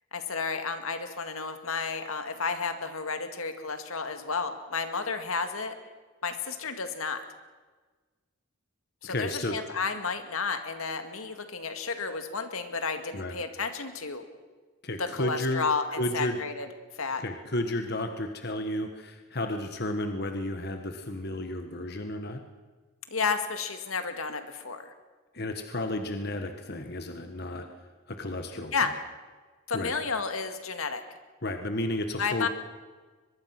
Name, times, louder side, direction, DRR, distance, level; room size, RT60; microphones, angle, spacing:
voice 1, 0.1-5.8 6.2-7.2 9.0-14.2 15.0-16.7 17.0-17.2 23.1-24.9 28.7-28.9 29.7-31.0 32.2-32.5, left 5 dB, 75° left, 7 dB, 2.1 m, -32 dB
voice 2, 9.0-9.6 13.1-13.4 14.8-15.6 16.0-16.4 17.2-22.4 25.3-27.7 28.1-28.9 29.7-29.9 31.4-32.5, left 1 dB, 45° left, 6 dB, 1.5 m, -32 dB
23.0 x 22.0 x 6.0 m, 1.4 s
head